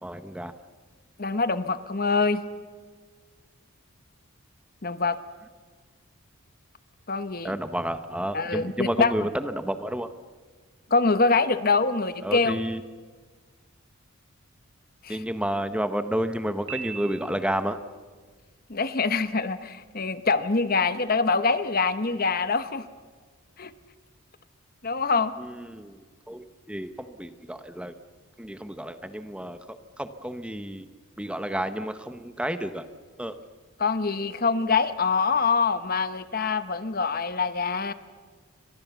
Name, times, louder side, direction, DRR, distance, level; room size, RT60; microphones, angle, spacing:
voice 1, 0.0-0.5 7.4-10.1 12.2-12.8 15.1-17.8 25.4-26.0 26.3-27.9 28.4-30.9 31.2-32.9 33.2-33.3, equal, 5° right, 9 dB, 0.9 m, -31 dB
voice 2, 1.2-2.4 4.8-5.2 7.1-7.6 8.3-9.1 10.9-12.6 15.0-15.2 18.7-22.9 23.6-23.7 24.8-25.3 33.8-37.9, left 4 dB, 40° left, 12 dB, 1.0 m, -24 dB
Piano, 16.7-17.8, right 7 dB, 70° right, 5.1 m, -39 dB
29.5 x 25.5 x 7.1 m, 1.5 s
head